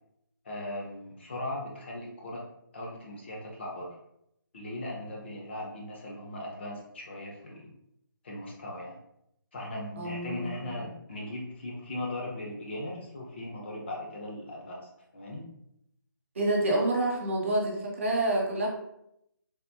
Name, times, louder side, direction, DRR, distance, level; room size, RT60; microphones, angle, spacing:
voice 1, 0.4-2.4 2.7-3.9 4.5-7.7 8.2-9.0 9.5-15.4, left 1 dB, 30° left, -2 dB, 0.6 m, -38 dB
voice 2, 10.0-10.8 16.3-18.7, right 1 dB, 35° right, -2 dB, 0.6 m, -28 dB
3.4 x 2.1 x 2.7 m, 0.78 s
figure-of-eight pair, 150°, 12 cm